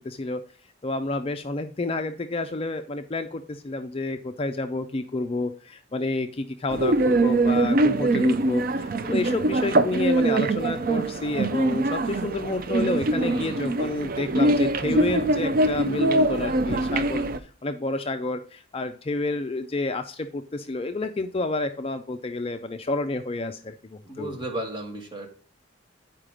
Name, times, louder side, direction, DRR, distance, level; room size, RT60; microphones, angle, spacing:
voice 1, 0.0-0.4 0.8-17.3 17.6-24.4, left 2 dB, 30° left, 7 dB, 0.4 m, -29 dB
sound 1, 6.7-17.4, right 2 dB, 45° right, 0.5 m, -23 dB
voice 2, 13.1-13.7 24.1-25.3, right 1 dB, 25° right, 1 dB, 1.7 m, -34 dB
9.1 x 4.9 x 4.9 m, 0.42 s
head